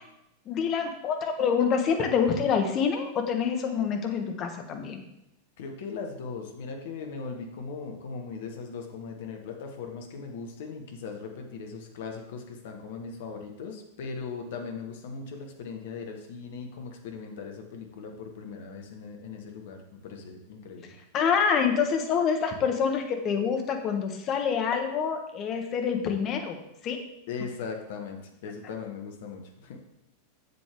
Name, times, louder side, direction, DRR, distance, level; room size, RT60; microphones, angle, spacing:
voice 1, 0.5-5.0 21.1-26.6 26.8-27.0, left 6 dB, 35° left, 4 dB, 1.3 m, -26 dB
voice 2, 5.6-20.9 27.3-29.8, left 5 dB, 55° left, 3 dB, 1.4 m, -39 dB
7.9 x 7.8 x 3.7 m, 0.84 s
figure-of-eight pair, 90°, 0 cm